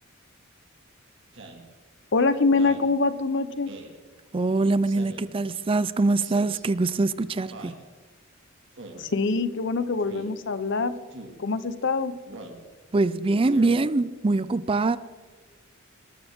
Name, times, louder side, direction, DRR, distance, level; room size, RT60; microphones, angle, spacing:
Speech synthesizer, 1.3-1.6 2.5-2.9 3.7-4.0 4.8-5.3 6.2-6.6 7.5-7.8 8.8-9.1 10.0-10.3 11.1-11.4 12.3-12.6 13.4-13.8, right 2 dB, 65° right, 2.2 m, -42 dB
voice 1, 2.1-3.7 9.0-10.9 11.4-12.2, left 3 dB, 60° left, 0.8 m, -24 dB
voice 2, 4.3-7.7 12.9-15.0, right 3 dB, 25° right, 0.4 m, -23 dB
20.0 x 13.0 x 3.7 m
head